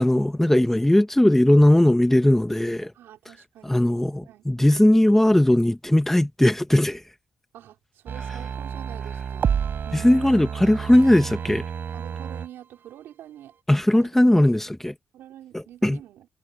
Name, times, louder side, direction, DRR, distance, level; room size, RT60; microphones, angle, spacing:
voice 1, 0.0-2.9 3.6-7.0 9.9-11.6 13.7-14.9 15.5-16.0, left 1 dB, 10° left, 1.2 m, -19 dB
voice 2, 2.9-4.5 7.5-9.6 9.8-10.3 11.9-13.6 13.9-14.1 15.1-16.3, right 12 dB, 85° right, 4.9 m, -46 dB
sound 1, 8.1-12.5 12.8-12.9, right 7 dB, 65° right, 4.3 m, -30 dB
supercardioid pair, 60°, 4 cm